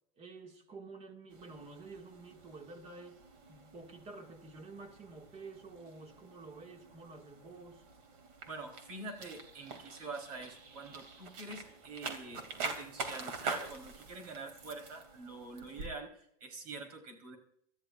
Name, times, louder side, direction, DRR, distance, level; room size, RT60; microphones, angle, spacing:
voice 1, 0.2-3.2 3.5-7.9, right 3 dB, 35° right, 2.2 m, -50 dB
sound 1, 1.3-15.9, right 4 dB, 65° right, 2.9 m, -46 dB
voice 2, 8.5-17.4, right 3 dB, 90° right, 4.4 m, -45 dB
25.0 x 13.5 x 2.6 m
supercardioid pair, 140°, 19 cm